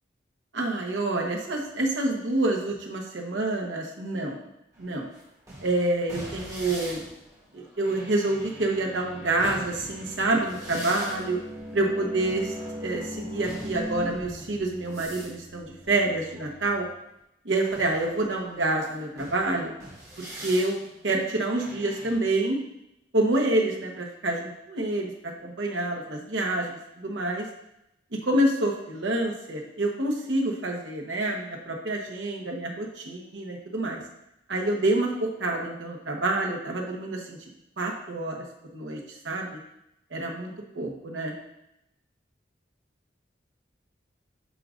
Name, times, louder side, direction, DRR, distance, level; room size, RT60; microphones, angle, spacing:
voice 1, 0.5-4.4 4.8-5.1 5.6-7.0 7.5-11.4 11.7-16.9 17.4-19.7 20.2-20.8 21.0-22.6 23.1-27.4 28.2-34.0 34.5-37.4 37.8-38.4 38.7-39.0 39.2-39.6 40.1-41.3, right 2 dB, 85° right, 0 dB, 1.1 m, -27 dB
sound 1, 4.7-16.9 17.6-22.1, equal, 20° right, 2.5 m, -40 dB
8.5 x 6.3 x 2.5 m, 0.83 s
head